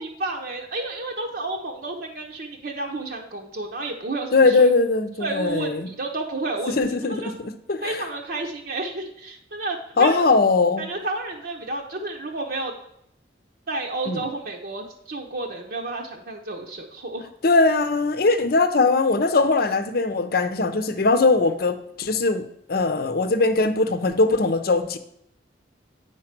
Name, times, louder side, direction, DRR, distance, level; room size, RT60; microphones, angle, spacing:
voice 1, 0.0-4.7 5.2-6.7 7.1-7.3 7.8-10.2 10.8-12.7 13.7-17.3, right 2 dB, 55° right, 1 dB, 0.9 m, -31 dB
voice 2, 4.3-5.9 6.8-8.0 10.0-10.9 14.1-14.2 17.4-25.0, left 3 dB, 55° left, 10 dB, 0.7 m, -20 dB
9.0 x 4.6 x 5.9 m, 0.73 s
head